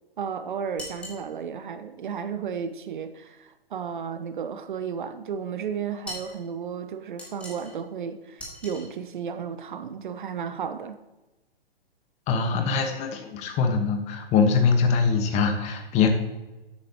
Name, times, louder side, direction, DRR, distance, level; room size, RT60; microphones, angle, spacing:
voice 1, 0.2-11.0, right 7 dB, 55° right, 10 dB, 0.8 m, -33 dB
sound 1, 0.8-1.2 6.0-6.4 7.2-7.8 8.4-8.9, left 1 dB, 5° left, 2.3 m, -39 dB
voice 2, 12.3-16.1, left 5 dB, 20° left, 5 dB, 1.3 m, -23 dB
12.0 x 8.6 x 2.9 m, 1.1 s
figure-of-eight pair, 120°, 30 cm